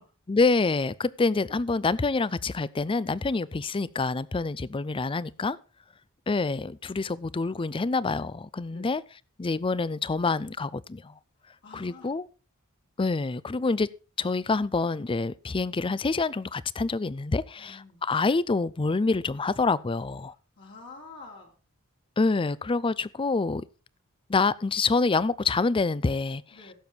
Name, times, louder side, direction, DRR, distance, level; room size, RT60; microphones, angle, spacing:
voice 1, 0.3-5.6 6.3-9.0 9.4-11.1 11.7-12.2 13.0-13.9 14.2-20.3 22.2-23.6 24.3-26.4, left 3 dB, 25° left, 0.4 m, -26 dB
voice 2, 11.4-12.1 17.6-18.0 20.6-21.5 26.5-26.7, left 3 dB, 55° left, 3.0 m, -48 dB
16.0 x 7.0 x 4.5 m
head